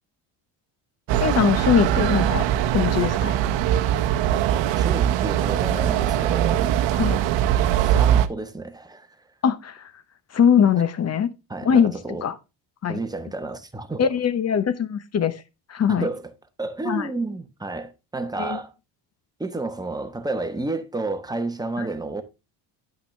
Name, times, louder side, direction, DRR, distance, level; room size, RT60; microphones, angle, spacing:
sound 1, 1.1-8.3, right 11 dB, 65° right, 0.9 m, -21 dB
voice 1, 1.2-2.4 2.7-3.4 6.9-7.2 9.4-9.9 10.3-11.3 11.6-11.9 12.2-12.3 12.8-13.0 14.0-15.3 15.7-16.1 16.8-17.1 18.4-18.6, left 7 dB, 35° left, 0.9 m, -21 dB
voice 2, 4.7-6.6 7.7-9.2 11.5-12.3 12.9-14.0 15.9-16.3 16.6-18.7 19.4-22.2, right 2 dB, 10° right, 1.1 m, -31 dB
10.5 x 5.8 x 3.3 m
cardioid pair, 115°, 47 cm